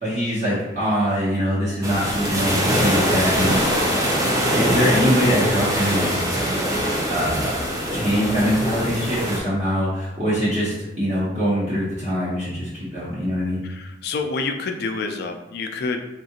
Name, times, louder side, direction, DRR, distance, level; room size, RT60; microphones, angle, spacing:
voice 1, 0.0-3.9 4.5-6.1 7.1-7.5 7.9-13.6, equal, 40° right, -10 dB, 0.9 m, -23 dB
sound 1, 1.8-9.4, equal, 20° right, 0.5 m, -22 dB
voice 2, 13.6-16.0, left 4 dB, 55° left, 5 dB, 0.4 m, -28 dB
3.6 x 2.4 x 2.8 m, 0.99 s
head